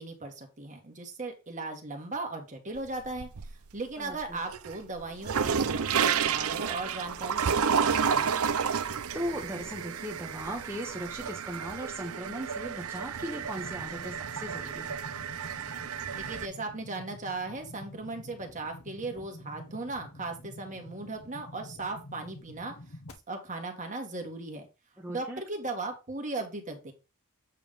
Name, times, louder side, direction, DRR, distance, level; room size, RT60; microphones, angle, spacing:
voice 1, 0.0-3.3 3.7-8.4 16.2-23.0 23.3-24.7 25.1-26.9, right 3 dB, 35° right, 3 dB, 1.7 m, -37 dB
sound 1, 2.8-3.7 4.1-16.5, right 7 dB, 70° right, 0.6 m, -31 dB
voice 2, 4.0-4.4 9.1-15.0 25.0-25.4, equal, 10° right, -2 dB, 1.1 m, -38 dB
sound 2, 13.1-23.1, left 1 dB, 75° left, 1.3 m, -48 dB
8.4 x 3.5 x 5.2 m, 0.28 s
head